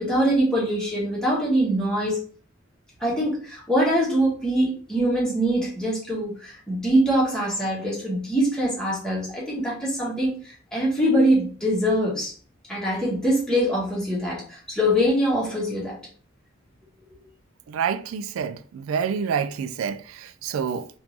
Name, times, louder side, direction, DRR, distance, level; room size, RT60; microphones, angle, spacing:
voice 1, 0.0-2.2 3.0-12.3 12.7-16.0, equal, 5° left, 1.2 m, -23 dB
voice 2, 17.7-20.9, right 7 dB, 85° right, 0.3 m, -28 dB
3.5 x 2.5 x 3.0 m
head